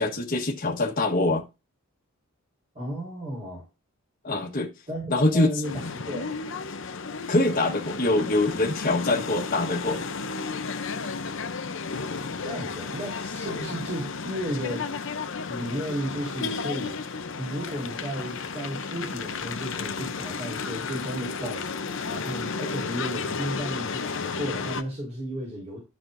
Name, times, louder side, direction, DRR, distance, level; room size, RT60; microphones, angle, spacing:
voice 1, 0.0-1.4 4.2-4.7 5.1-5.5 7.3-10.0, left 2 dB, 40° left, 1.5 m, -24 dB
voice 2, 2.7-3.7 4.9-6.3 12.4-14.9 15.5-16.9 17.4-25.8, equal, 30° right, 4.4 m, -34 dB
sound 1, 5.6-24.8, left 4 dB, 60° left, 0.7 m, -33 dB
13.0 x 5.7 x 2.7 m
head